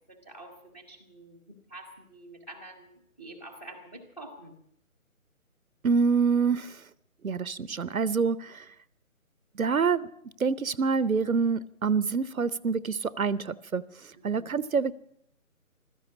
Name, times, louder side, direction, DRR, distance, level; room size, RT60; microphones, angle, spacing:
voice 1, 0.1-1.4 1.7-2.9 3.2-4.5 14.2-14.5, right 2 dB, 10° left, 5 dB, 0.9 m, -47 dB
voice 2, 5.8-6.8 7.2-8.7 9.6-10.1 10.4-13.8 14.2-14.9, right 5 dB, 75° right, 19 dB, 0.7 m, -26 dB
15.5 x 13.0 x 6.0 m, 0.71 s
figure-of-eight pair, 150°, 42 cm